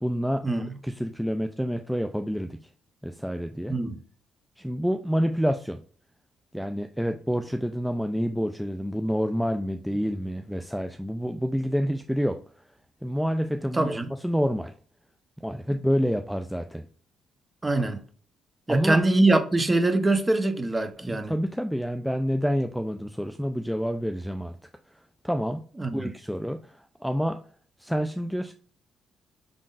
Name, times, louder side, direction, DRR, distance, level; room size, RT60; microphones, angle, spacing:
voice 1, 0.0-0.4 0.8-2.6 3.0-3.8 4.6-5.8 6.5-12.4 13.0-14.7 15.4-16.9 18.7-19.0 21.0-24.6 25.2-25.6 25.9-27.4 27.8-28.5, equal, ahead, 0.4 m, -28 dB
voice 2, 13.7-14.1 17.6-18.0 18.7-21.3 25.8-26.1, right 2 dB, 20° right, 0.9 m, -23 dB
5.1 x 3.6 x 2.5 m
supercardioid pair, 60°, 0 cm